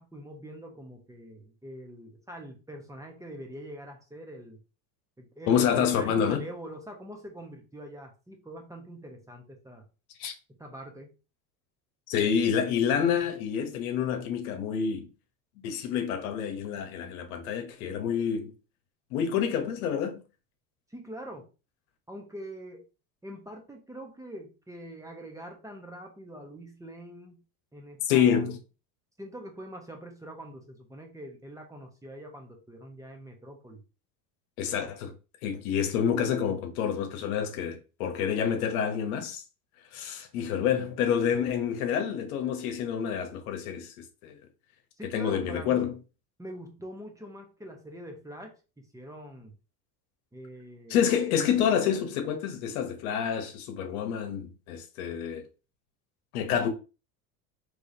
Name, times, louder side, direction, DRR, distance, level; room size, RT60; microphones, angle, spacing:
voice 1, 0.0-4.6 5.2-9.9 10.6-11.1 20.9-21.5 22.1-22.8 23.2-27.4 27.7-28.4 29.2-33.8 45.0-45.9 46.4-49.6 50.3-51.0, right 1 dB, 10° right, 0.9 m, -44 dB
voice 2, 5.5-6.4 10.2-10.3 12.1-15.1 15.6-18.5 19.1-20.2 28.0-28.6 34.6-35.1 35.4-39.4 39.9-44.3 45.1-46.0 50.9-55.4 56.3-56.7, left 8 dB, 85° left, 0.9 m, -28 dB
3.6 x 3.1 x 2.7 m
supercardioid pair, 95°, 42 cm